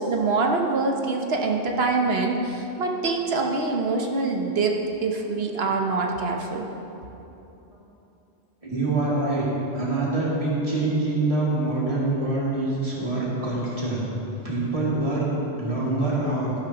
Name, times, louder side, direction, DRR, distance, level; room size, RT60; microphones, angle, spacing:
voice 1, 0.0-4.7 5.0-6.6, right 3 dB, 60° right, 2 dB, 1.1 m, -24 dB
voice 2, 8.6-14.1 14.4-16.5, right 2 dB, 30° right, -7 dB, 2.4 m, -25 dB
12.0 x 11.0 x 2.9 m, 2.9 s
omnidirectional pair, 1.2 m